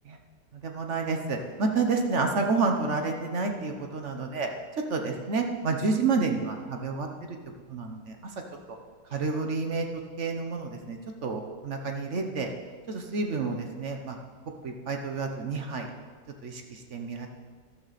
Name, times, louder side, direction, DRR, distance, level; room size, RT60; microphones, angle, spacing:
voice 1, 0.6-4.5 4.9-7.1 7.7-8.0 9.1-9.9 10.2-12.5 12.9-14.2 14.6-15.9 16.4-17.3, right 4 dB, 45° right, 3 dB, 1.2 m, -29 dB
13.0 x 12.5 x 4.2 m, 1.5 s
omnidirectional pair, 2.0 m